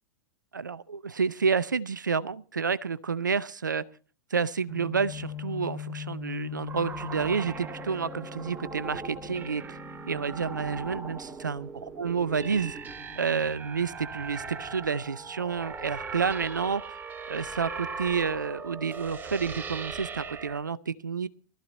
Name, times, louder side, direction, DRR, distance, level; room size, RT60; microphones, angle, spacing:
voice 1, 0.5-3.8 4.3-9.8 10.0-11.7 12.0-12.7 13.2-17.0 17.3-21.3, right 5 dB, 75° right, 18 dB, 0.7 m, -29 dB
sound 1, 4.7-11.2 11.5-11.8 12.2-12.7 13.1-13.2, left 10 dB, 25° left, 4.5 m, -41 dB
sound 2, 6.7-20.6, right 4 dB, 20° right, 1.7 m, -39 dB
19.0 x 13.5 x 4.1 m, 0.39 s
figure-of-eight pair, 100°, 10 cm